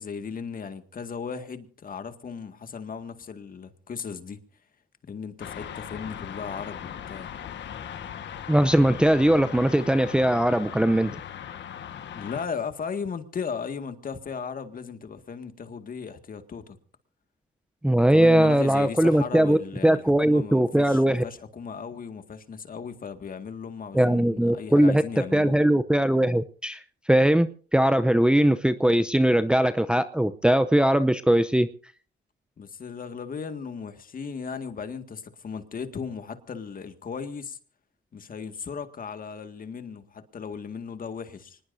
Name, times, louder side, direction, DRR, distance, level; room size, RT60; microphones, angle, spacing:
voice 1, 0.0-4.4 5.0-7.3 12.1-16.8 17.9-25.6 32.6-37.6 38.1-41.6, left 6 dB, 45° left, 2.0 m, -36 dB
sound 1, 5.4-12.4, left 9 dB, 65° left, 1.5 m, -39 dB
voice 2, 8.5-11.2 17.8-19.6 19.8-21.2 23.9-25.0 25.3-26.8 27.1-31.7, right 1 dB, 5° right, 0.7 m, -20 dB
24.5 x 20.0 x 2.7 m
cardioid pair, 90°, 20 cm